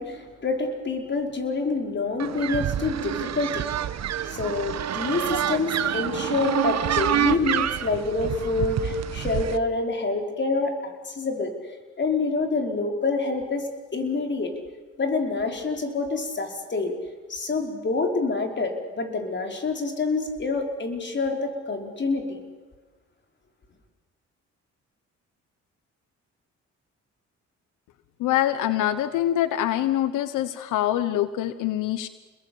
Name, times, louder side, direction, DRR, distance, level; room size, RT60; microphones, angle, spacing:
voice 1, 0.0-3.7 4.3-11.5 12.0-14.5 15.0-16.9 17.3-22.4, left 3 dB, 35° left, 4 dB, 5.2 m, -27 dB
sound 1, 2.2-9.6, right 10 dB, 60° right, 1.3 m, -27 dB
voice 2, 28.2-32.1, left 12 dB, 90° left, 12 dB, 1.2 m, -24 dB
29.5 x 21.0 x 8.7 m, 1.3 s
cardioid pair, 90°, 30 cm